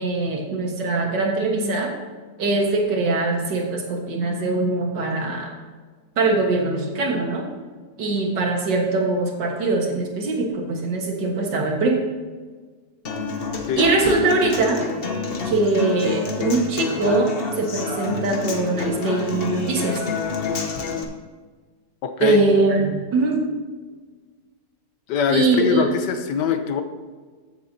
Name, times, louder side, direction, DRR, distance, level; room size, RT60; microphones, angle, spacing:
voice 1, 0.0-1.9 2.4-5.5 6.2-7.4 8.0-12.0 13.8-14.8 15.4-20.0 22.2-23.4 25.3-25.9, right 3 dB, 85° right, 1 dB, 2.1 m, -22 dB
Human voice / Acoustic guitar, 13.0-21.0, left 5 dB, 40° left, 0.9 m, -28 dB
voice 2, 22.0-22.4 25.1-26.8, left 7 dB, 75° left, 8 dB, 1.4 m, -22 dB
14.5 x 7.3 x 2.7 m, 1.4 s
omnidirectional pair, 1.9 m